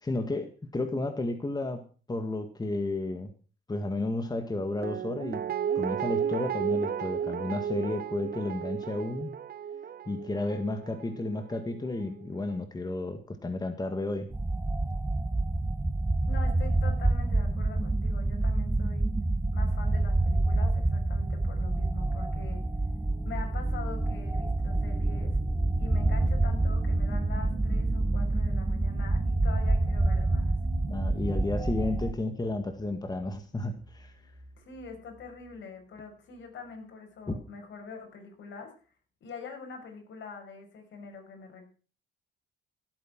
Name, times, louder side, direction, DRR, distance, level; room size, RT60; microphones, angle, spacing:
voice 1, 0.0-3.3 3.7-5.4 5.8-9.3 10.1-14.3 30.9-34.1 37.3-37.4, left 2 dB, 20° left, 7 dB, 1.9 m, -32 dB
Guitar, 4.8-11.8 12.2-12.3, right 8 dB, 50° right, 1.1 m, -33 dB
sound 1, 14.3-32.1, right 2 dB, 10° right, 0.7 m, -27 dB
voice 2, 16.3-19.1 19.5-22.6 23.2-25.4 25.8-30.6 34.6-38.7 39.2-41.7, left 5 dB, 70° left, 4 dB, 6.2 m, -44 dB
sound 2, 22.3-37.9, right 4 dB, 90° right, 3.7 m, -53 dB
16.5 x 8.8 x 6.1 m, 0.38 s
cardioid pair, 90°, 20 cm